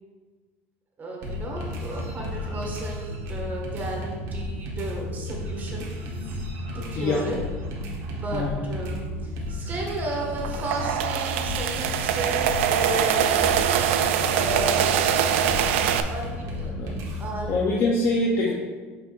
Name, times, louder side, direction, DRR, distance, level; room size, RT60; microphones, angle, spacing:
voice 1, 1.0-5.9 6.7-7.4 8.0-9.1 9.5-13.3 14.3-15.7 16.1-16.8 17.2-17.5, right 2 dB, 30° right, -1 dB, 1.8 m, -34 dB
sound 1, 1.2-17.5, left 1 dB, 60° right, 1.7 m, -33 dB
voice 2, 6.9-7.3 8.3-8.6 16.8-17.1 17.4-18.5, left 2 dB, 40° left, -2 dB, 0.9 m, -25 dB
sound 2, 10.4-16.0, right 9 dB, 85° right, 0.4 m, -23 dB
8.8 x 5.3 x 2.6 m, 1.4 s
supercardioid pair, 120°, 6 cm